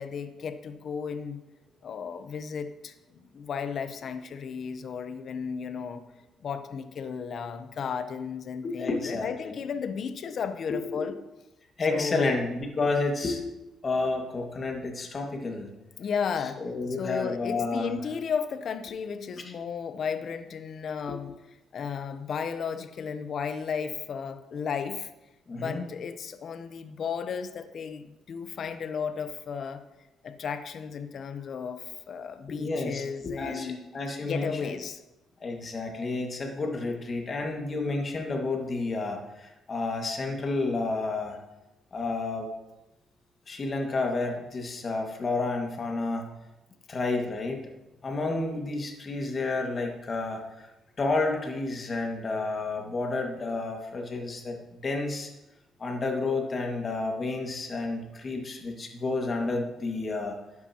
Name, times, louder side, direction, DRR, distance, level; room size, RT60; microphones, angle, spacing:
voice 1, 0.0-1.4 1.8-6.0 6.4-11.1 11.9-12.3 16.0-16.6 17.0-21.3 21.7-25.1 25.5-29.8 30.2-33.8 34.2-35.0, left 6 dB, 60° left, 10 dB, 0.9 m, -34 dB
voice 2, 8.6-9.6 10.7-10.8 11.8-13.4 13.8-15.7 16.6-17.9 21.1-21.2 25.5-25.9 32.6-34.7 35.4-41.4 41.9-42.5 43.5-46.3 46.9-47.6 48.0-50.7 51.0-55.3 55.8-60.4, left 3 dB, 40° left, 1 dB, 2.0 m, -30 dB
12.5 x 9.6 x 3.0 m, 0.98 s
cardioid pair, 90°, 0 cm